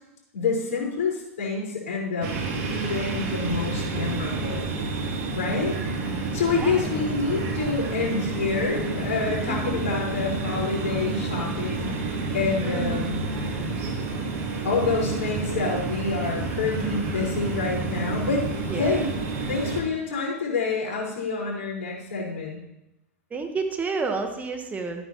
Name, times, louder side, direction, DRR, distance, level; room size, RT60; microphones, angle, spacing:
voice 1, 0.3-4.7 5.3-5.7 6.0-13.2 14.6-18.4 18.7-19.0 19.5-22.6, left 4 dB, 65° left, -3 dB, 4.5 m, -28 dB
sound 1, 2.2-19.8, right 3 dB, 50° right, 2.6 m, -29 dB
voice 2, 6.5-6.8 9.5-9.8 12.6-13.1 18.7-19.1 23.3-25.1, right 4 dB, 20° right, 5 dB, 1.1 m, -30 dB
13.0 x 9.4 x 3.0 m, 0.88 s
hypercardioid pair, 100°, 8 cm